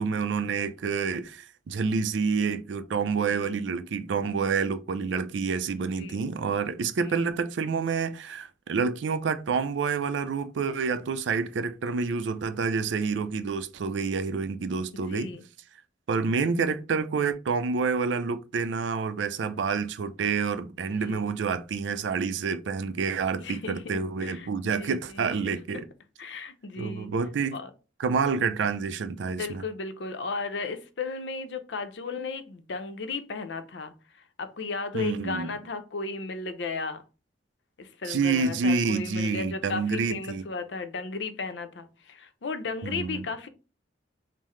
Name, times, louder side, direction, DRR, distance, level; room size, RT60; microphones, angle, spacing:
voice 1, 0.0-15.3 16.1-25.8 26.8-27.6 28.0-29.6 34.9-35.6 38.1-40.4 42.8-43.3, right 5 dB, 85° right, 0.4 m, -28 dB
voice 2, 3.1-3.6 5.9-6.2 7.0-7.1 15.0-15.4 20.9-21.3 23.3-25.8 26.2-27.1 27.5-27.7 29.4-37.0 37.8-43.5, left 4 dB, 75° left, 0.6 m, -35 dB
5.5 x 2.0 x 3.1 m
head